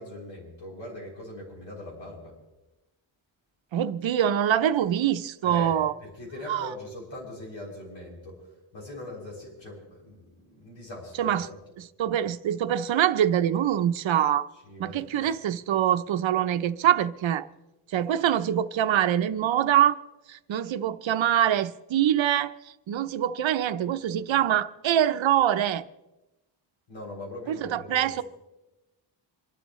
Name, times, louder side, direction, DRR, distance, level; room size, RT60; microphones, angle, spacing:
voice 1, 0.0-2.3 5.4-5.7 6.0-8.3 8.7-11.6 14.6-15.3 18.0-18.3 26.9-28.1, left 1 dB, 75° left, 6.7 m, -41 dB
voice 2, 3.7-5.9 6.5-6.7 11.2-11.5 11.8-14.5 14.8-17.5 17.9-20.0 20.3-22.5 22.9-25.9 27.5-28.2, right 10 dB, 80° right, 0.7 m, -24 dB
26.5 x 12.5 x 3.2 m
wide cardioid pair, 160°, 46 cm